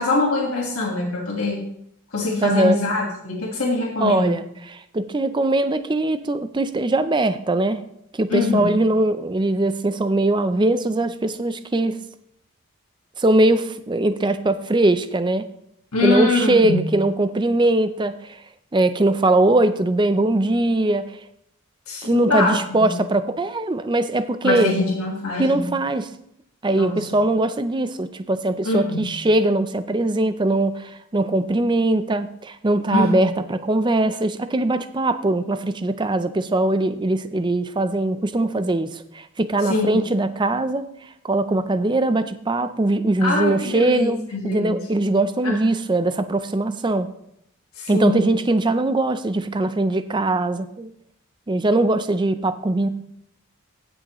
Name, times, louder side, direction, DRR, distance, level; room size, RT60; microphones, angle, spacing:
voice 1, 0.0-1.6 2.1-4.4 8.3-8.7 15.9-16.8 21.9-23.0 24.4-25.7 26.7-27.1 28.6-29.2 32.9-33.4 39.6-40.0 43.2-44.9 45.4-45.6 47.7-48.3, left 2 dB, 85° left, -3 dB, 1.7 m, -23 dB
voice 2, 2.4-2.8 4.0-7.8 8.1-12.0 13.2-15.5 16.0-18.4 18.7-21.1 22.0-24.7 25.4-26.1 26.6-40.9 41.2-47.1 47.9-50.9 51.5-52.9, right 2 dB, 20° right, 12 dB, 0.5 m, -21 dB
15.5 x 6.3 x 3.0 m, 0.75 s
head